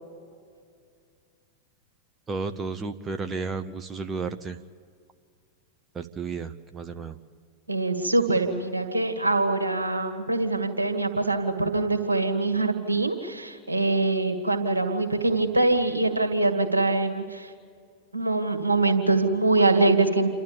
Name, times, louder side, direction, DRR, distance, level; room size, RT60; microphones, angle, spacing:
voice 1, 2.3-4.6 5.9-7.2, right 4 dB, 20° right, 8 dB, 0.8 m, -32 dB
voice 2, 7.7-17.5 18.1-20.3, right 2 dB, 80° right, 6 dB, 1.9 m, -24 dB
28.5 x 12.5 x 8.9 m, 2.1 s
figure-of-eight pair, 90°, 0 cm